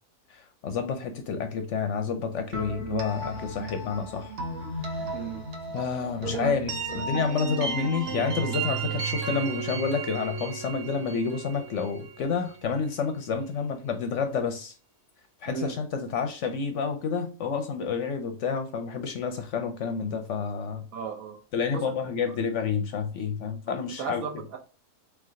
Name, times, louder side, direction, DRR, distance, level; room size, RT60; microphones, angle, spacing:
voice 1, 0.3-4.3 5.7-14.7 15.4-20.8 21.5-24.2, left 5 dB, 65° left, 0.8 m, -29 dB
sound 1, 2.5-12.3, right 4 dB, 50° right, 0.9 m, -34 dB
voice 2, 5.1-5.5 6.2-6.5 15.5-15.8 20.9-21.4 21.7-21.8 22.3-22.4 23.7-24.6, right 6 dB, 70° right, 1.2 m, -35 dB
3.3 x 3.3 x 3.7 m
omnidirectional pair, 1.5 m